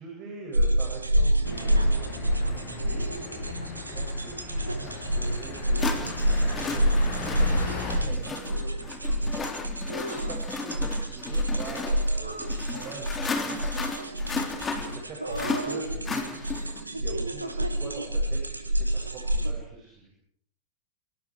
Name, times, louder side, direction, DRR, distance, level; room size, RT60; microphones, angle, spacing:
voice 1, 0.0-6.2 7.1-9.4 9.7-13.9 14.7-16.4 16.9-20.1, right 3 dB, 30° right, 1 dB, 7.7 m, -44 dB
sound 1, 0.5-19.5, right 1 dB, 80° right, 2.5 m, -28 dB
sound 2, 1.4-8.0, left 5 dB, 40° left, 7.3 m, -38 dB
sound 3, 4.9-5.0 5.8-16.8, left 4 dB, 20° left, 3.7 m, -35 dB
26.5 x 24.5 x 5.0 m, 0.64 s
figure-of-eight pair, 90°, 0 cm